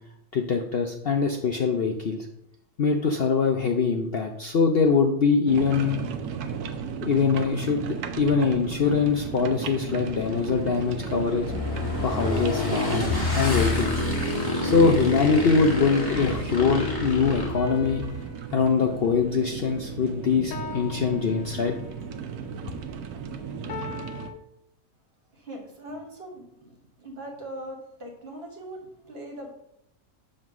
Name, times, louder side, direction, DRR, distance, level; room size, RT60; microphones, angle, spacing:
voice 1, 0.3-2.3 2.8-6.0 7.0-11.5 12.0-14.0 14.6-18.0 18.5-21.7, left 5 dB, 65° left, 2 dB, 0.6 m, -23 dB
sound 1, 5.5-24.3, right 6 dB, 75° right, 1.1 m, -36 dB
Motorcycle / Engine, 8.5-18.2, left 2 dB, 15° left, 1.2 m, -29 dB
sound 2, 17.6-20.0 20.5-22.1 23.7-24.4, left 2 dB, 90° left, 1.3 m, -40 dB
voice 2, 25.3-29.5, right 1 dB, 40° right, 1 dB, 1.5 m, -40 dB
7.4 x 3.2 x 6.0 m, 0.79 s
omnidirectional pair, 1.7 m